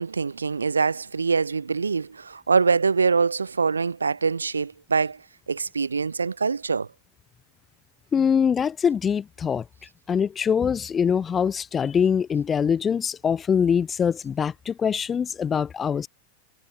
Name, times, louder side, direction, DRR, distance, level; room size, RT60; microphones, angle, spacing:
voice 1, 0.0-5.2 5.5-6.9, right 5 dB, 75° right, 0.5 m, -24 dB
voice 2, 8.1-9.6 10.1-16.1, left 7 dB, 20° left, 0.4 m, -23 dB
figure-of-eight pair, 90°, 0 cm